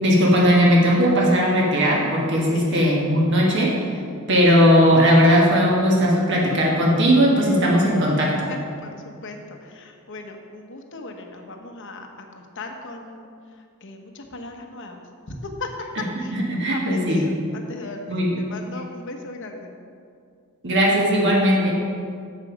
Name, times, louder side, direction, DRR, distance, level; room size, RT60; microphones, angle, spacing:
voice 1, 0.0-3.7 4.3-8.5 16.3-17.3 18.1-18.3 20.6-21.7, equal, 55° right, -3 dB, 1.5 m, -18 dB
voice 2, 2.5-2.9 8.5-13.3 13.8-15.0 15.4-15.7 16.2-19.7, left 2 dB, 55° left, 4 dB, 1.0 m, -37 dB
7.8 x 7.3 x 5.1 m, 2.3 s
head